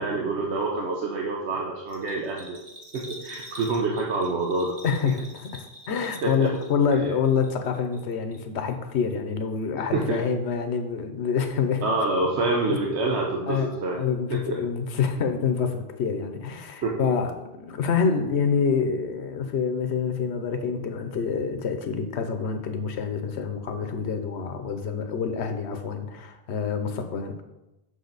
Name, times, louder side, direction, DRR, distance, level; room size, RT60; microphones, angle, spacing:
voice 1, 0.0-2.6 2.9-4.8 6.2-6.5 9.9-10.2 11.8-14.0 14.3-14.6 16.8-17.1, right 3 dB, 80° right, -1 dB, 1.1 m, -27 dB
Bell, 1.9-7.0 7.2-8.0 8.3-8.4, equal, 35° right, 1.3 m, -45 dB
voice 2, 4.8-11.8 12.7-12.8 13.5-17.3 17.6-27.4, left 6 dB, 80° left, 7 dB, 1.1 m, -27 dB
6.6 x 6.0 x 4.0 m, 0.96 s
omnidirectional pair, 1.1 m